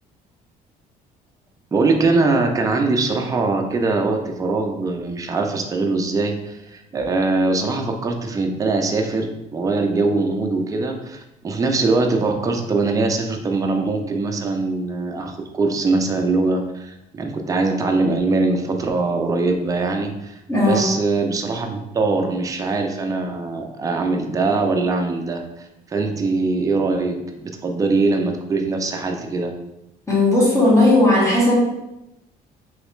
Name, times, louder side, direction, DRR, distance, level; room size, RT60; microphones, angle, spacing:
voice 1, 1.7-29.5, right 3 dB, 20° right, 3 dB, 0.4 m, -22 dB
voice 2, 20.5-20.8 30.1-31.5, left 1 dB, 15° left, -6 dB, 1.4 m, -16 dB
3.1 x 2.9 x 3.1 m, 0.90 s
cardioid pair, 110°, 17 cm